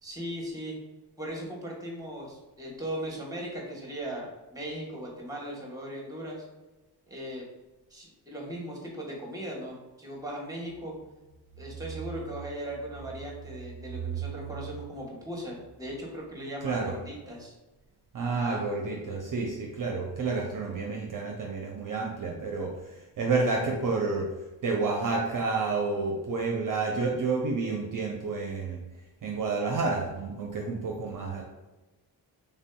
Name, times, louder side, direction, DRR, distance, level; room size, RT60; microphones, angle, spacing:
voice 1, 0.0-0.8 1.2-6.4 7.1-7.5 7.9-10.9 11.6-17.5 18.2-18.6, equal, 10° right, -2 dB, 1.0 m, -38 dB
voice 2, 16.6-16.9 18.1-22.8 23.2-24.3 24.6-28.8 29.2-31.4, right 3 dB, 50° right, 0 dB, 0.5 m, -29 dB
3.3 x 2.6 x 2.2 m, 1.1 s
cardioid pair, 65°, 42 cm